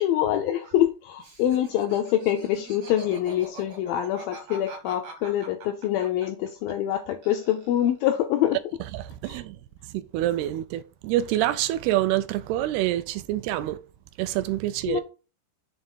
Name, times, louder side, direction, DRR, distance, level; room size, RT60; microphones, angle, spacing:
voice 1, 0.0-8.6 9.3-9.4 14.9-15.0, left 11 dB, 85° left, 2.0 m, -25 dB
Laughter, 1.2-7.0 7.2-8.0, right 1 dB, 50° right, 1.1 m, -43 dB
voice 2, 8.9-9.5 9.9-13.8 14.2-15.0, right 14 dB, 85° right, 2.4 m, -26 dB
7.5 x 3.3 x 5.4 m
omnidirectional pair, 4.7 m